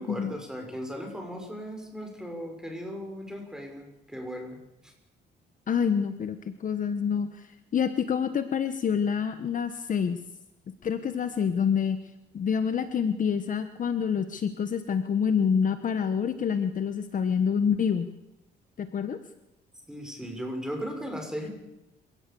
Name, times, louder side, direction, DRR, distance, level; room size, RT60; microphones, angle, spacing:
voice 1, 0.0-4.9 19.9-21.5, equal, 5° right, 3 dB, 6.4 m, -37 dB
voice 2, 5.7-6.4 6.6-10.2 10.8-12.0 12.3-18.1 18.8-19.2, left 7 dB, 45° left, 10 dB, 1.3 m, -27 dB
28.5 x 17.0 x 7.1 m, 0.94 s
cardioid pair, 105°, 18 cm